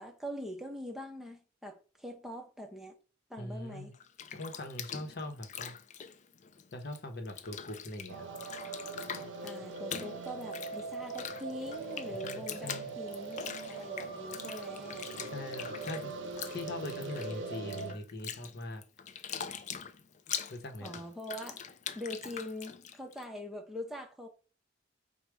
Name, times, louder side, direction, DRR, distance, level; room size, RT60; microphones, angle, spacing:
voice 1, 0.0-3.0 3.3-3.9 9.4-15.1 20.8-21.7 21.9-24.3, equal, ahead, 0.6 m, -43 dB
voice 2, 3.4-3.9 4.3-5.7 6.7-8.3 12.2-12.9 15.2-16.1 16.5-18.8 20.5-20.9, left 1 dB, 60° left, 0.8 m, -41 dB
Bathtub (filling or washing), 3.9-7.0 7.3-23.2, left 8 dB, 40° left, 0.4 m, -43 dB
sound 1, 8.1-17.9, right 3 dB, 80° right, 0.6 m, -41 dB
4.7 x 2.1 x 4.6 m
head